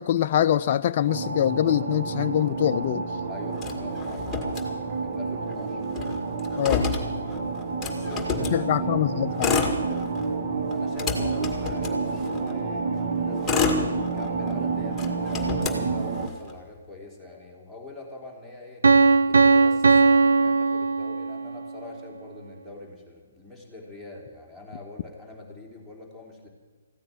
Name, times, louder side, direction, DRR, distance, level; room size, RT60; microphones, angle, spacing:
voice 1, 0.0-3.0 6.6-6.9 8.5-9.6, left 10 dB, 40° left, 9 dB, 0.4 m, -24 dB
sound 1, 1.1-16.3, right 4 dB, 50° right, 1.7 m, -29 dB
voice 2, 3.3-5.8 7.8-9.5 10.7-18.8 19.3-26.5, left 2 dB, 5° right, -1 dB, 3.5 m, -43 dB
Motor vehicle (road), 3.6-5.2 5.5-5.6 5.8-8.6 9.2-10.3 10.7-12.5 13.1-14.5 14.9-16.5, left 4 dB, 10° left, 2.1 m, -29 dB
Piano, 18.8-21.6, right 4 dB, 70° right, 0.7 m, -18 dB
15.5 x 9.3 x 9.5 m, 1.4 s
figure-of-eight pair, 135°, 0 cm